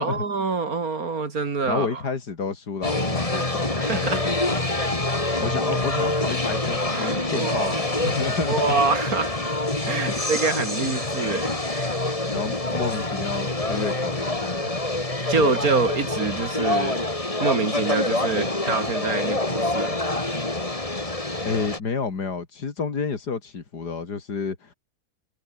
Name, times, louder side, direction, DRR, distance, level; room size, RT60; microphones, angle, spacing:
voice 1, 0.0-2.0 3.7-4.2 6.9-7.8 8.5-9.3 9.8-12.0 15.3-17.0 17.4-20.0, right 4 dB, 65° right, 3.0 m, -26 dB
voice 2, 1.7-5.0 5.4-8.7 10.1-10.2 12.2-14.7 15.4-15.5 21.4-24.7, left 5 dB, 85° left, 3.2 m, -30 dB
sound 1, 2.8-21.8, left 2 dB, 20° left, 2.7 m, -26 dB
omnidirectional pair, 1.7 m